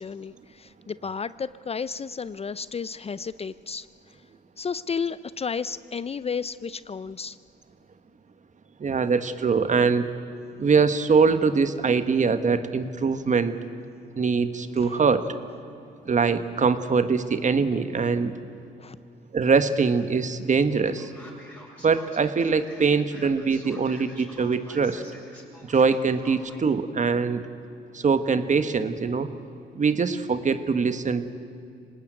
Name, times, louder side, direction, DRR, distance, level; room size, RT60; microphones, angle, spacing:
voice 1, 0.0-3.9 4.6-7.4 14.8-15.0 18.8-19.0, left 6 dB, 30° left, 16 dB, 0.5 m, -32 dB
voice 2, 8.8-10.1 10.6-13.5 14.2-15.3 16.0-18.3 19.3-21.1 21.8-25.0 25.7-27.4 27.9-29.3 29.7-31.3, right 5 dB, 40° right, 10 dB, 1.5 m, -23 dB
Male speech man speaking, 20.8-26.7, equal, 5° left, 7.5 m, -48 dB
25.5 x 19.0 x 9.3 m, 2.5 s
cardioid pair, 90°, 20 cm